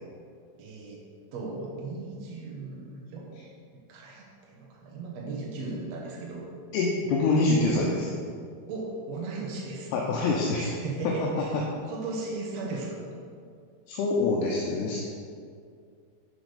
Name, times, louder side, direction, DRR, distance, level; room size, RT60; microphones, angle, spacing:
voice 1, 0.6-1.0 1.3-3.3 3.9-6.5 7.6-7.9 8.7-13.0, right 3 dB, 70° right, -3 dB, 1.6 m, -37 dB
voice 2, 6.7-8.1 9.9-10.7 13.9-15.0, left 3 dB, 75° left, -2 dB, 2.8 m, -25 dB
11.5 x 6.2 x 5.0 m, 2.2 s
omnidirectional pair, 5.0 m